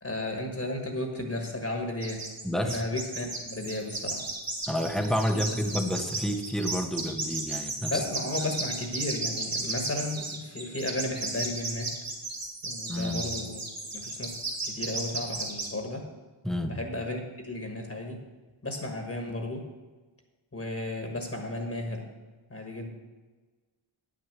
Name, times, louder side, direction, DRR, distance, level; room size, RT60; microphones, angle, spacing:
voice 1, 0.0-2.3 2.6-4.3 7.9-11.9 12.6-13.6 13.9-16.1 16.6-18.2 18.6-19.7 20.5-22.1 22.5-22.9, left 1 dB, 30° left, 3 dB, 1.5 m, -34 dB
sound 1, 2.0-2.4 2.7-15.7, right 2 dB, 45° right, 2.6 m, -34 dB
voice 2, 2.4-2.8 4.7-8.0 8.4-8.5 12.9-13.2 16.4-16.8, equal, ahead, 6 dB, 0.9 m, -29 dB
9.4 x 6.4 x 7.5 m, 1.3 s
wide cardioid pair, 120°, 47 cm